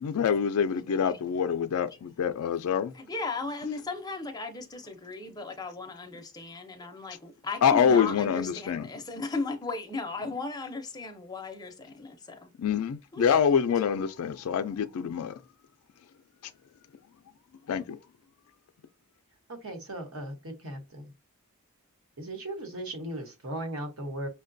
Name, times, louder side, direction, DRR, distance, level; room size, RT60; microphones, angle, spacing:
voice 1, 0.0-2.9 7.6-8.9 12.6-15.4 17.7-18.0, left 7 dB, 80° left, 0.4 m, -26 dB
voice 2, 2.6-12.5 13.1-13.4, left 3 dB, 15° left, 0.5 m, -36 dB
voice 3, 19.5-21.1 22.2-24.3, right 1 dB, 70° right, 1.1 m, -37 dB
5.7 x 2.2 x 2.6 m
head